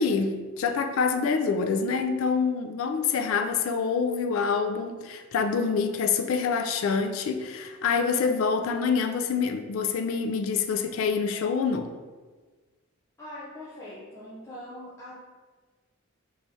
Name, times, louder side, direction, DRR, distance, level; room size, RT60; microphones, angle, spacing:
voice 1, 0.0-11.9, left 5 dB, 75° left, 6 dB, 0.3 m, -26 dB
voice 2, 13.2-15.2, left 1 dB, 15° left, -9 dB, 0.5 m, -42 dB
4.7 x 3.1 x 2.7 m, 1.4 s
head